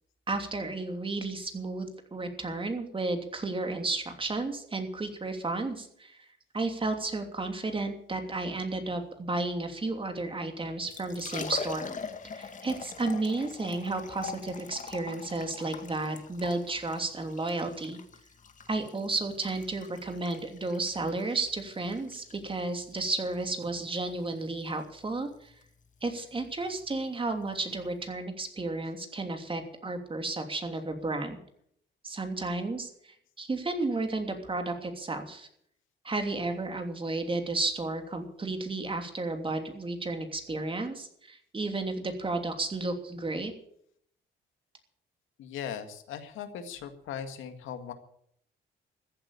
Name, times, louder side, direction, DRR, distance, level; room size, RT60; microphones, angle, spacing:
voice 1, 0.3-6.2 6.5-11.9 12.4-18.0 18.7-25.5 26.0-31.4 32.0-35.5 36.0-43.5, right 2 dB, 25° right, 5 dB, 3.0 m, -33 dB
Liquid, 10.7-28.1, left 5 dB, 40° left, 2.0 m, -44 dB
voice 2, 45.4-47.9, left 8 dB, 85° left, 8 dB, 2.0 m, -39 dB
15.0 x 9.1 x 8.4 m, 0.67 s
cardioid pair, 90°, 20 cm